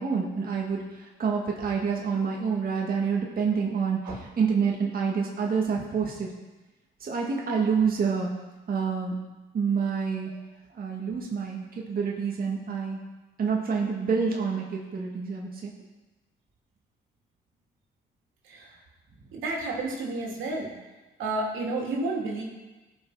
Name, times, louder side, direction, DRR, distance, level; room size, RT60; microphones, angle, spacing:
voice 1, 0.0-6.3 7.0-8.3 8.7-9.1 9.5-10.3 10.7-13.0 13.4-15.7, right 5 dB, 50° right, -2 dB, 2.0 m, -27 dB
voice 2, 18.4-18.7 19.3-20.7 21.2-22.4, right 2 dB, 85° right, -2 dB, 2.9 m, -31 dB
18.0 x 6.0 x 4.8 m, 1.2 s
cardioid pair, 90°, 20 cm